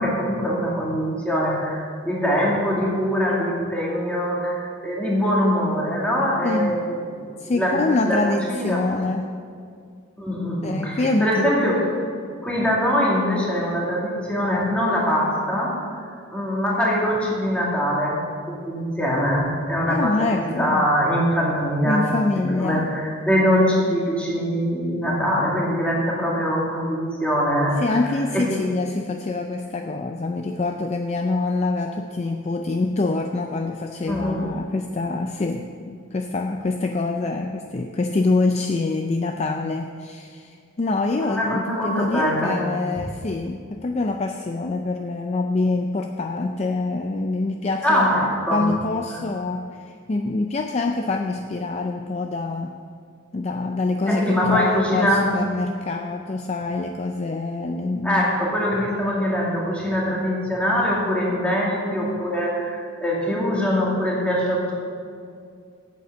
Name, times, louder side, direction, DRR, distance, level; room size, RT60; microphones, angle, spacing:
voice 1, 0.0-8.8 10.2-11.9 12.4-15.8 16.3-22.1 22.5-27.8 28.3-28.4 34.1-34.5 41.3-42.6 47.8-48.7 54.1-55.3 58.0-64.7, equal, 5° left, -5 dB, 2.2 m, -23 dB
voice 2, 6.4-6.9 7.4-9.3 10.6-11.5 19.9-20.9 21.8-23.0 27.8-48.1 48.5-52.8 53.3-58.2 63.3-63.4, left 3 dB, 30° left, 5 dB, 0.4 m, -25 dB
9.5 x 7.7 x 6.8 m, 2.2 s
head